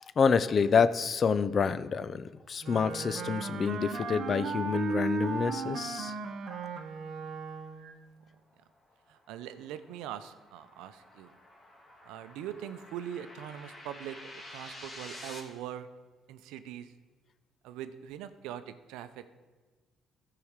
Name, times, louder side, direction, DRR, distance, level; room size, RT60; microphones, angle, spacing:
voice 1, 0.2-6.1 6.5-6.6, left 6 dB, 45° left, 14 dB, 0.5 m, -28 dB
Wind instrument woodwind instrument, 2.6-7.9, right 4 dB, 65° right, 1.0 m, -36 dB
sound 1, 8.5-15.4, left 1 dB, 25° left, 2.4 m, -50 dB
voice 2, 9.1-11.4 12.0-15.9 16.3-16.9 17.6-19.3, right 10 dB, 85° right, 11 dB, 0.6 m, -42 dB
14.5 x 4.9 x 6.6 m, 1.3 s
supercardioid pair, 75°, 0 cm